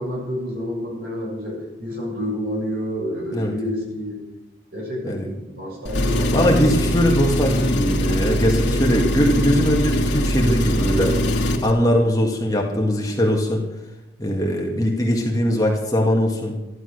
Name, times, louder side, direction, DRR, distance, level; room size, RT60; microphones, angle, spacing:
voice 1, 0.0-4.3 4.7-6.9 8.5-8.8, equal, 55° right, -3 dB, 7.4 m, -29 dB
Engine, 5.8-11.7, equal, 85° left, 1.8 m, -22 dB
voice 2, 6.3-11.2 11.6-13.6 14.2-16.5, equal, 20° left, -1 dB, 2.1 m, -20 dB
14.0 x 11.5 x 6.6 m, 0.96 s
head